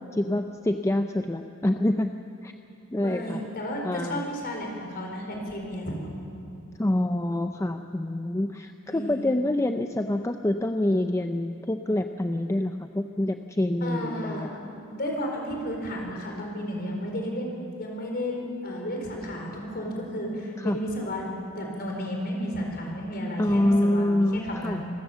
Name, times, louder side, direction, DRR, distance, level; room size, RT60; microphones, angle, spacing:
voice 1, 0.1-2.1 2.4-2.5 2.9-3.4 3.8-4.2 6.8-14.5 20.6-20.8 23.4-24.8, left 1 dB, 15° left, 6 dB, 0.5 m, -26 dB
voice 2, 3.0-6.1 8.9-9.3 13.8-17.5 17.8-24.9, equal, 45° left, 0 dB, 4.6 m, -33 dB
25.5 x 14.5 x 7.4 m, 2.6 s
head